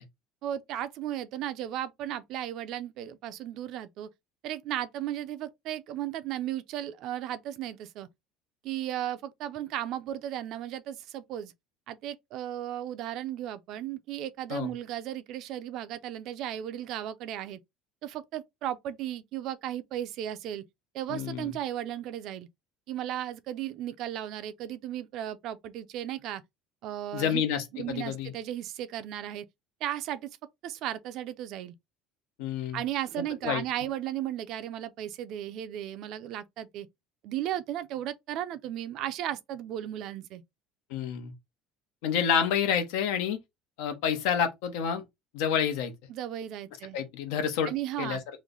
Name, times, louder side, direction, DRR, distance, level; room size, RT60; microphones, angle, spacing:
voice 1, 0.4-4.1 4.4-8.1 8.6-11.5 11.9-17.6 18.0-20.6 20.9-22.5 22.9-26.4 26.8-27.4 27.7-29.5 29.8-30.3 30.6-31.7 32.7-36.9 37.2-40.4 46.1-47.0 47.6-48.2, right 12 dB, 55° right, 0.4 m, -35 dB
voice 2, 21.1-21.5 27.1-28.3 32.4-32.8 33.4-33.6 40.9-41.3 42.0-43.4 43.8-45.0 45.3-45.9 46.9-47.7 48.0-48.2, left 8 dB, 85° left, 0.9 m, -28 dB
3.1 x 2.1 x 3.7 m
cardioid pair, 135°, 0 cm